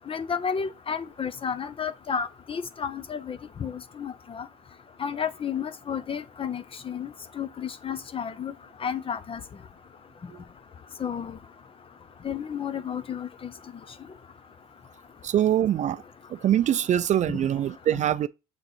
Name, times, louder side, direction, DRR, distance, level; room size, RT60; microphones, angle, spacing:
voice 1, 0.1-4.5 5.0-8.5 8.8-9.4 11.0-11.4 12.2-13.5, left 7 dB, 35° left, 0.7 m, -32 dB
voice 2, 15.2-16.0 16.3-18.3, right 11 dB, 45° right, 0.4 m, -24 dB
7.0 x 3.9 x 4.4 m
cardioid pair, 110°, 17 cm